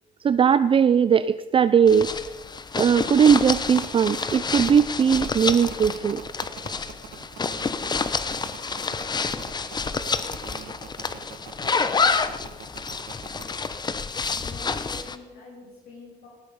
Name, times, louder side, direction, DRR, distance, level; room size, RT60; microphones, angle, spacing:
voice 1, 0.2-2.1 2.8-6.2, right 7 dB, 30° right, 13 dB, 0.5 m, -19 dB
sound 1, 1.9-15.2, left 4 dB, 25° left, 0.9 m, -28 dB
sound 2, 3.7-13.4, right 10 dB, 60° right, 1.5 m, -42 dB
voice 2, 14.3-16.3, left 3 dB, 70° left, -5 dB, 6.3 m, -45 dB
18.5 x 13.5 x 5.5 m, 1.2 s
cardioid pair, 110°, 17 cm